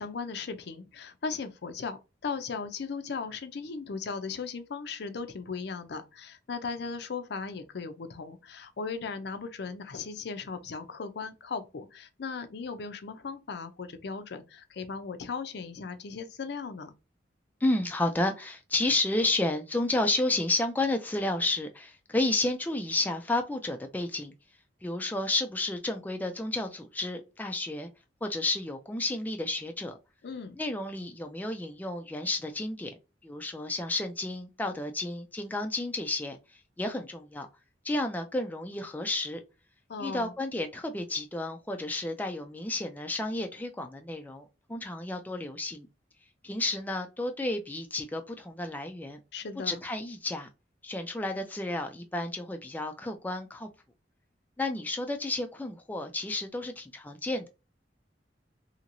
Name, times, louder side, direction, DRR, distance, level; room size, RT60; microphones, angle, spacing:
voice 1, 0.0-16.9 30.2-30.6 39.9-40.3 49.3-49.8, left 5 dB, 65° left, 0.5 m, -37 dB
voice 2, 17.6-24.3 24.8-27.9 28.2-30.0 30.6-32.9 33.2-37.5 37.8-39.4 40.0-45.9 46.4-49.2 49.6-50.5 50.8-53.7 54.6-57.5, left 2 dB, 10° left, 0.3 m, -31 dB
2.8 x 2.8 x 2.6 m
head